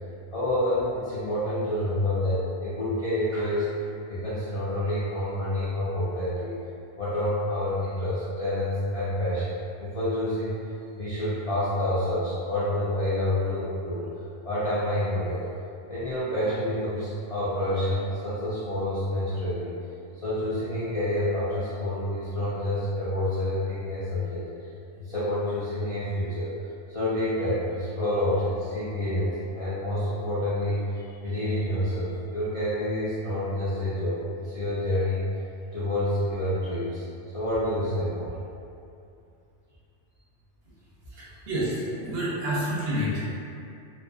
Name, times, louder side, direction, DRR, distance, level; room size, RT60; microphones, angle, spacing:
voice 1, 0.3-3.7 4.1-6.5 7.0-10.6 11.0-14.1 14.4-15.4 15.9-19.7 20.2-24.5 25.0-26.5 26.9-35.2 35.7-37.0 37.3-38.3, left 1 dB, 55° left, -13 dB, 0.4 m, -28 dB
voice 2, 41.1-43.4, equal, 65° right, -7 dB, 0.7 m, -29 dB
2.4 x 2.4 x 2.3 m, 2.6 s
omnidirectional pair, 1.2 m